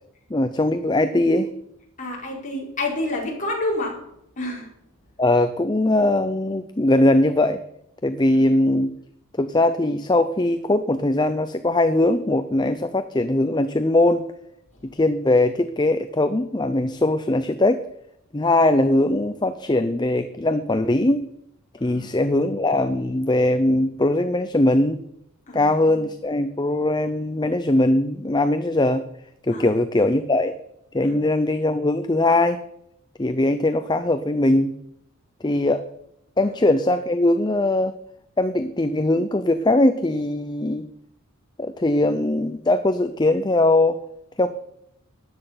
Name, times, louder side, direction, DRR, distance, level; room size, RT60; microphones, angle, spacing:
voice 1, 0.3-1.5 5.2-7.6 8.0-8.9 9.4-14.2 14.9-17.8 18.3-21.2 21.8-25.0 25.5-29.0 29.5-30.5 30.9-32.6 33.2-34.7 35.4-35.8 36.4-37.9 38.4-40.9 41.6-44.0 44.4-44.5, left 1 dB, 20° left, 10 dB, 0.6 m, -20 dB
voice 2, 2.0-4.0 4.4-4.7 21.8-22.0 25.5-26.0 29.5-29.7 31.0-31.2, left 2 dB, 35° left, -2 dB, 4.5 m, -28 dB
13.5 x 10.0 x 5.8 m, 0.78 s
head